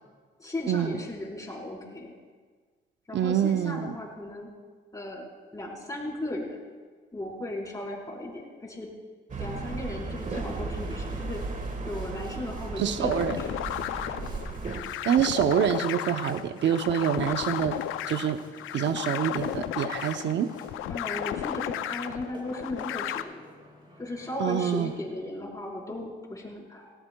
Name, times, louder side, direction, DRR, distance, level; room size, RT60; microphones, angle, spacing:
voice 1, 0.4-2.1 3.1-4.5 4.9-6.7 7.1-8.9 9.4-11.4 11.9-13.5 20.9-23.5 24.0-26.9, left 1 dB, 15° left, -3 dB, 4.2 m, -36 dB
voice 2, 3.1-3.9 12.8-13.4 15.0-17.8 18.1-18.4 18.7-20.5 24.4-24.9, right 9 dB, 65° right, 9 dB, 0.6 m, -26 dB
sound 1, 9.3-14.8, right 3 dB, 40° right, 1.5 m, -35 dB
Boat Water vehicle, 10.1-25.0, equal, 25° right, 4.6 m, -52 dB
sound 2, 13.1-23.2, left 12 dB, 85° left, 0.5 m, -34 dB
18.5 x 17.5 x 2.3 m, 1.5 s
cardioid pair, 90°, 20 cm